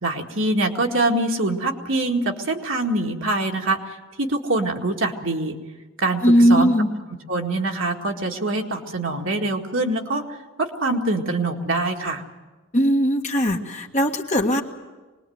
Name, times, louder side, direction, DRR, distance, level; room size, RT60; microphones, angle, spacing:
voice 1, 0.0-5.6 6.0-6.2 6.5-6.7 7.3-10.2 10.6-12.2, right 2 dB, 60° right, 1 dB, 2.0 m, -24 dB
voice 2, 6.2-6.9 12.7-14.6, equal, 35° left, 2 dB, 1.8 m, -18 dB
25.0 x 20.5 x 7.9 m, 1.2 s
head